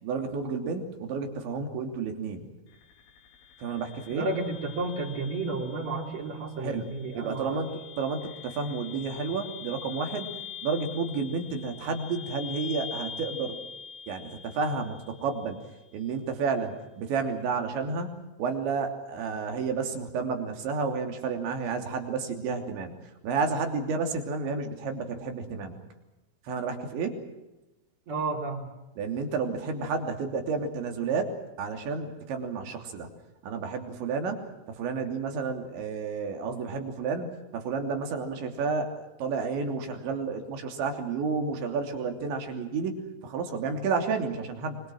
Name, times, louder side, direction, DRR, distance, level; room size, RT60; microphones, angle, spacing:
voice 1, 0.0-2.5 3.6-4.3 6.6-6.8 7.1-10.3 10.6-13.6 14.1-15.6 15.9-23.0 23.2-25.8 26.4-27.2 29.0-31.3 31.6-33.1 33.4-44.8, right 4 dB, 65° right, 4 dB, 5.2 m, -31 dB
sound 1, 2.7-15.7, left 7 dB, 90° left, 5.7 m, -44 dB
voice 2, 4.1-7.6 28.1-28.7, right 3 dB, 35° right, 3 dB, 4.3 m, -32 dB
27.5 x 24.5 x 6.3 m, 0.98 s
omnidirectional pair, 5.7 m